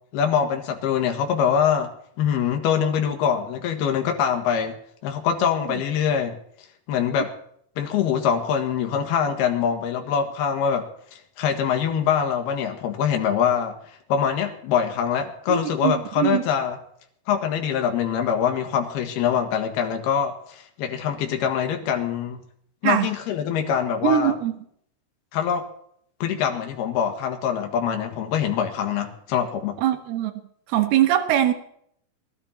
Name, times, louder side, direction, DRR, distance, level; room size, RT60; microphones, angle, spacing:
voice 1, 0.1-1.9 2.2-4.7 5.0-6.4 6.9-7.3 7.8-10.9 11.4-13.8 14.1-16.8 17.3-22.4 22.8-24.3 25.3-25.6 26.2-29.8, left 8 dB, 60° left, 3.1 m, -24 dB
voice 2, 15.5-16.4 22.8-23.1 24.0-24.5 29.8-30.3 30.7-31.5, right 11 dB, 65° right, 2.8 m, -22 dB
20.5 x 12.0 x 4.4 m
omnidirectional pair, 5.9 m